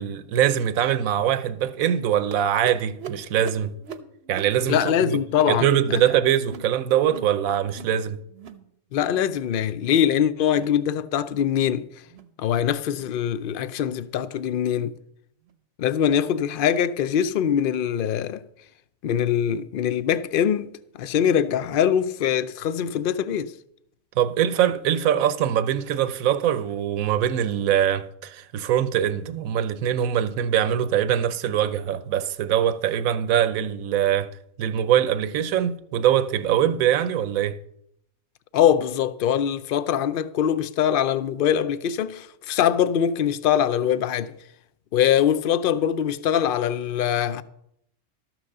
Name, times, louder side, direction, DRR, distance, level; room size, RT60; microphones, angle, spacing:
voice 1, 0.0-3.8 4.3-5.2 5.5-8.2 24.2-34.3 34.6-37.6, right 10 dB, 80° right, 1.1 m, -23 dB
sound 1, 2.3-7.4 7.6-8.0 8.3-8.7 9.0-9.4 9.7-10.1 10.5-10.8 11.3-11.5 12.1-12.3 12.9-13.1 13.7-13.9 14.6-14.7 15.5-15.6, right 6 dB, 55° right, 0.9 m, -41 dB
voice 2, 4.7-6.0 8.9-11.9 12.4-15.0 15.8-18.4 19.0-20.7 21.0-23.5 38.5-44.3 44.9-47.4, left 9 dB, 70° left, 0.5 m, -23 dB
13.0 x 6.0 x 6.6 m
omnidirectional pair, 1.5 m